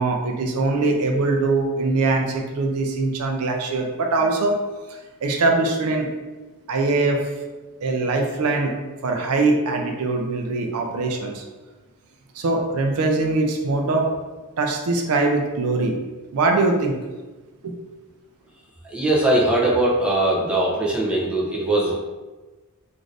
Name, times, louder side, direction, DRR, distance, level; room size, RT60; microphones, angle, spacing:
voice 1, 0.0-4.6 4.9-6.1 6.7-7.3 7.8-8.7 9.0-11.4 12.3-14.1 14.6-16.0 16.3-17.0 17.6-17.7, right 3 dB, 70° right, 2 dB, 0.4 m, -22 dB
voice 2, 18.9-22.2, right 1 dB, 5° right, -5 dB, 0.5 m, -21 dB
2.6 x 2.5 x 3.2 m, 1.2 s
head